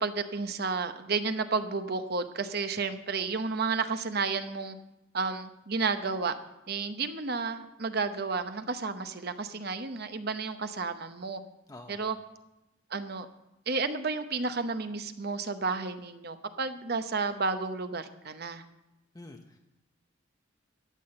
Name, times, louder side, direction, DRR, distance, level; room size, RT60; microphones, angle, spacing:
voice 1, 0.0-4.8 5.1-6.3 6.7-11.4 11.9-12.2 12.9-13.3 13.7-18.6, right 4 dB, 55° right, 9 dB, 0.8 m, -32 dB
voice 2, 11.7-12.1 19.1-19.6, left 2 dB, 20° left, 4 dB, 0.8 m, -47 dB
12.5 x 7.7 x 7.7 m, 0.94 s
head